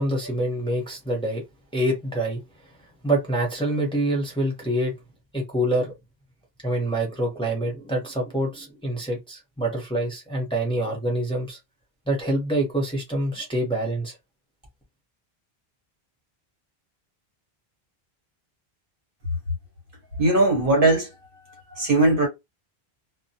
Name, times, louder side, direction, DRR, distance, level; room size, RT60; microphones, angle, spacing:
voice 1, 0.0-1.4 1.7-2.4 3.0-4.9 5.3-5.9 6.6-11.6 12.1-14.2, right 1 dB, 5° left, 0.8 m, -26 dB
voice 2, 20.2-21.1 21.8-22.3, right 2 dB, 60° right, 1.1 m, -19 dB
2.1 x 2.1 x 2.7 m
omnidirectional pair, 1.1 m